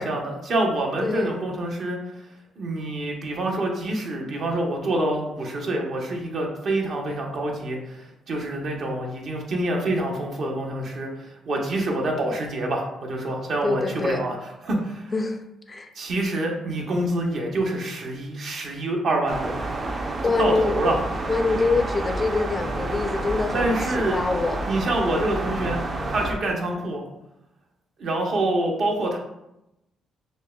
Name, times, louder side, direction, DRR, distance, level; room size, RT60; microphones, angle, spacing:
voice 1, 0.0-2.3 2.6-15.1 15.9-19.6 20.4-21.0 23.5-24.2 24.6-27.0 28.0-29.2, right 1 dB, 60° right, 1 dB, 0.8 m, -26 dB
voice 2, 13.6-14.2 14.7-14.8 15.1-15.4 15.7-15.9 20.2-20.8 21.3-23.8 24.1-24.7, left 3 dB, 30° left, 6 dB, 0.4 m, -25 dB
sound 1, 19.3-26.3, right 2 dB, 40° right, 0.5 m, -29 dB
6.2 x 2.1 x 2.3 m, 0.88 s
cardioid pair, 90°, 0 cm